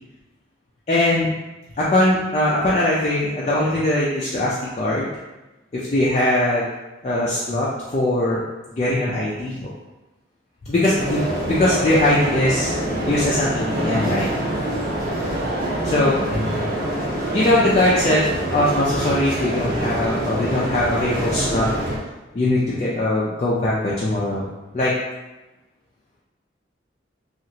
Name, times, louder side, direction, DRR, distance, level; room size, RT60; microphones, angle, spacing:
voice 1, 0.9-1.3 1.8-5.1 5.7-6.7 7.0-8.4 8.7-9.7 10.7-12.7 13.1-14.3 15.8-16.7 17.3-18.2 18.5-21.7 22.3-24.5 24.7-24.9, left 1 dB, 35° left, -6 dB, 0.3 m, -21 dB
sound 1, 10.9-22.0, right 1 dB, 50° right, 0.6 m, -25 dB
2.8 x 2.4 x 2.7 m, 1.1 s
head